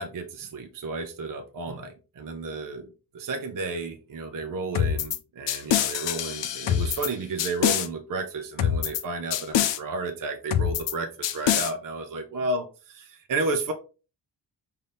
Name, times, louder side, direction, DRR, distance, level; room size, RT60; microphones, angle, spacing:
voice 1, 0.0-13.7, right 3 dB, 50° right, 6 dB, 0.6 m, -32 dB
sound 1, 4.7-5.2 5.5-7.1 7.4-7.9 8.6-9.0 9.3-9.8 10.5-10.9 11.2-11.7, left 10 dB, 80° left, 0.6 m, -25 dB
5.4 x 2.8 x 3.3 m, 0.34 s
wide cardioid pair, 145°, 43 cm